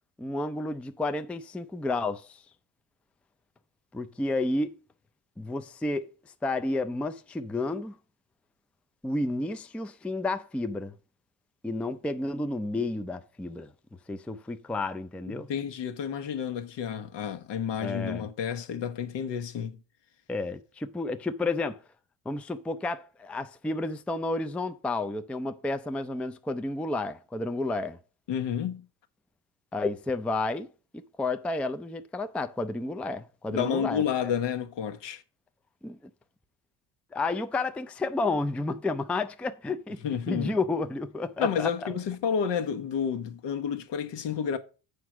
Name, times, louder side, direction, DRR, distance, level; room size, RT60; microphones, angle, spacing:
voice 1, 0.2-2.4 3.9-4.7 5.4-6.1 6.4-8.0 9.0-10.9 11.6-13.7 14.1-15.5 17.8-18.3 20.3-21.8 22.3-28.0 29.7-30.7 30.9-34.0 35.8-36.0 37.1-40.0 40.3-41.9, left 2 dB, 5° left, 0.4 m, -31 dB
voice 2, 15.3-19.8 28.3-28.9 33.5-35.2 40.0-40.6 41.4-44.6, left 8 dB, 65° left, 1.2 m, -30 dB
7.9 x 4.7 x 6.2 m
cardioid pair, 115°, 45 cm